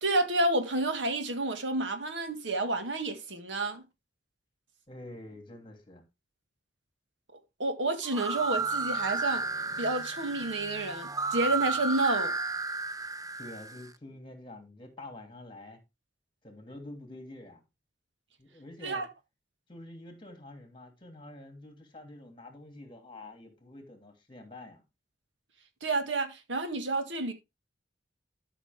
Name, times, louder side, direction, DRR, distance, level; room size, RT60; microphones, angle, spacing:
voice 1, 0.0-3.8 7.6-9.4 9.8-12.3 18.8-19.1 25.8-27.3, right 2 dB, 85° right, 1.7 m, -30 dB
voice 2, 4.9-6.0 13.4-15.8 16.4-17.6 18.4-19.0 19.7-24.8, left 1 dB, 30° left, 2.8 m, -47 dB
sound 1, 8.0-13.8, right 3 dB, 20° right, 0.5 m, -33 dB
12.5 x 5.9 x 3.5 m
head